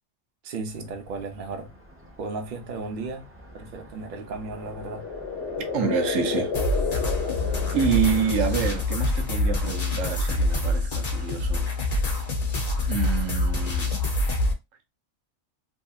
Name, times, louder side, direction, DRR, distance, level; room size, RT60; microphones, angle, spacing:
voice 1, 0.4-1.7 2.2-3.3 3.5-5.0, right 3 dB, 50° right, 0.7 m, -35 dB
Car passing by, 0.7-8.8, equal, 15° right, 0.6 m, -46 dB
sound 1, 4.4-8.6, left 5 dB, 60° left, 0.9 m, -31 dB
voice 2, 5.6-6.5 7.7-11.7 12.9-13.9, right 6 dB, 80° right, 1.0 m, -27 dB
sound 2, 6.5-14.5, left 2 dB, 40° left, 0.7 m, -26 dB
2.8 x 2.7 x 2.3 m
omnidirectional pair, 1.3 m